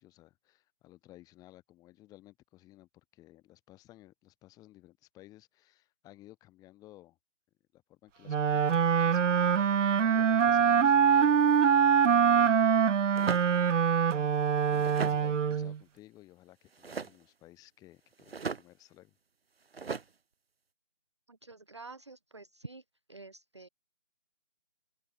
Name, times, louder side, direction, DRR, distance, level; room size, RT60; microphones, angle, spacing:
voice 1, 0.0-7.2 7.7-13.8 14.6-19.2, left 16 dB, 10° left, 6.6 m, -57 dB
Wind instrument woodwind instrument, 8.3-15.8, right 7 dB, 70° right, 0.5 m, -24 dB
sound 1, 13.2-13.5 14.6-15.2 16.7-17.2 18.1-18.6 19.7-20.0, right 5 dB, 50° right, 1.0 m, -37 dB
voice 2, 21.3-22.8 23.1-23.7, right 3 dB, 20° right, 0.8 m, -48 dB
open air
figure-of-eight pair, 155°, 39 cm